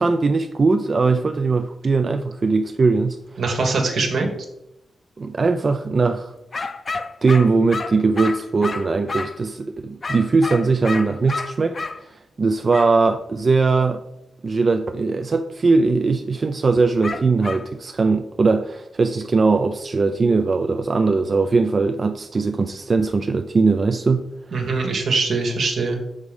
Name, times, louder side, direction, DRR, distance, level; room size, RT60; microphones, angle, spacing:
voice 1, 0.0-3.2 5.2-6.3 7.2-14.0 14.4-24.3, right 4 dB, 45° right, 0.4 m, -20 dB
voice 2, 3.4-4.3 24.5-26.0, right 3 dB, 80° right, 1.6 m, -22 dB
sound 1, 6.5-9.4 10.0-12.0 12.7-12.9 17.0-17.7, left 3 dB, 45° left, 0.6 m, -30 dB
6.5 x 5.0 x 5.3 m
cardioid pair, 75°, 0 cm